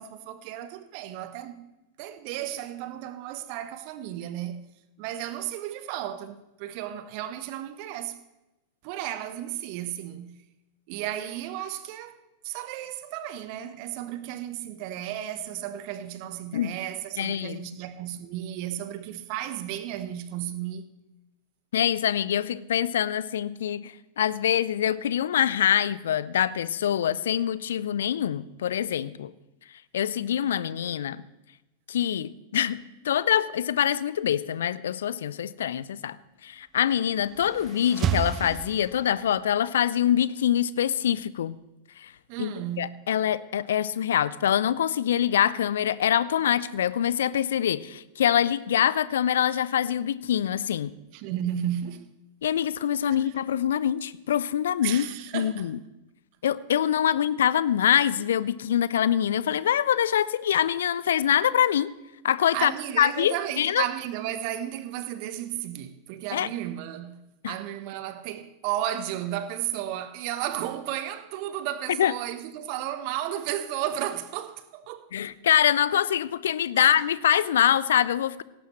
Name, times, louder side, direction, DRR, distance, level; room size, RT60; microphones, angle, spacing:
voice 1, 0.0-1.7 2.0-4.7 5.0-8.2 8.8-10.4 10.9-12.2 12.4-20.8 42.3-43.0 51.1-52.1 52.5-52.6 53.1-53.3 54.8-55.7 62.5-75.1 76.8-77.0, right 12 dB, 45° right, 1.1 m, -34 dB
voice 2, 17.2-17.6 21.7-29.3 29.9-31.2 31.9-36.2 36.4-41.5 42.0-42.1 42.4-42.5 42.8-50.9 52.4-55.1 55.3-55.8 56.4-61.9 62.2-62.7 63.0-63.8 66.3-66.5 67.4-67.5 72.0-72.1 75.1-78.4, left 10 dB, 60° left, 0.5 m, -24 dB
sound 1, 37.0-39.4, right 9 dB, 30° right, 0.5 m, -31 dB
17.5 x 16.5 x 3.2 m
figure-of-eight pair, 90°, 0 cm